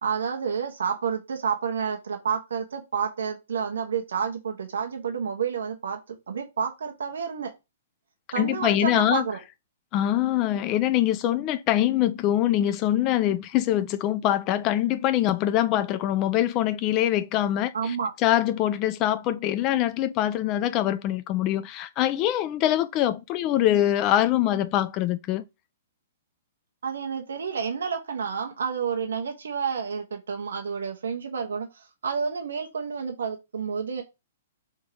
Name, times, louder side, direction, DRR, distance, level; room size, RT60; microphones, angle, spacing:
voice 1, 0.0-7.5 8.3-9.4 17.7-18.1 26.8-34.0, right 6 dB, 90° right, 0.9 m, -30 dB
voice 2, 8.4-9.2 9.9-18.0 18.2-25.4, left 12 dB, 30° left, 0.3 m, -24 dB
3.6 x 2.8 x 4.7 m
hypercardioid pair, 145°, 0 cm